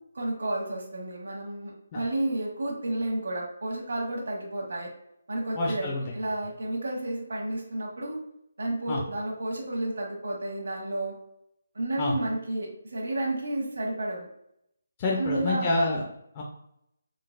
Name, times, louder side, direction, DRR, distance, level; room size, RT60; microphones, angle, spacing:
voice 1, 0.1-4.9 5.3-8.2 8.6-11.2 11.7-14.3 15.2-15.7, right 1 dB, 75° right, -2 dB, 1.1 m, -31 dB
voice 2, 5.6-6.0 8.9-9.0 12.0-12.1 15.0-16.0 16.3-16.4, left 2 dB, 15° left, -3 dB, 0.4 m, -27 dB
3.8 x 3.5 x 2.4 m, 0.76 s
hypercardioid pair, 175°, 0 cm